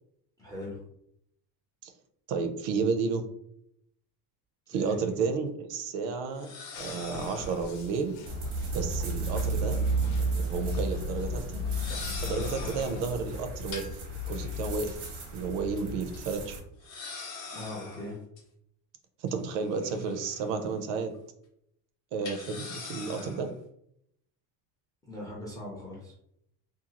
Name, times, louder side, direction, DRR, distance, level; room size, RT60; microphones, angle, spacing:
voice 1, 0.4-0.8 4.7-5.2 17.5-18.2 25.0-26.1, left 1 dB, 10° left, -4 dB, 0.3 m, -40 dB
voice 2, 2.3-3.2 4.7-6.5 6.8-8.1 8.7-9.8 10.2-11.6 12.2-13.9 14.3-15.0 15.3-16.6 19.2-21.1 22.1-23.5, right 5 dB, 70° right, 7 dB, 0.6 m, -32 dB
sound 1, 4.7-4.8 6.3-7.8 9.2-10.3 10.6-10.9 11.6-13.1 13.7-15.4 15.8-15.9 16.1-16.2 16.8-18.4 19.3-20.7 21.0-21.2 22.2-23.5, left 4 dB, 35° left, 0.7 m, -44 dB
sound 2, 6.7-13.4, left 1 dB, 80° left, 0.8 m, -46 dB
sound 3, 8.3-16.6, right 1 dB, 85° right, 1.0 m, -32 dB
2.7 x 2.3 x 2.8 m, 0.73 s
cardioid pair, 155°, 45 cm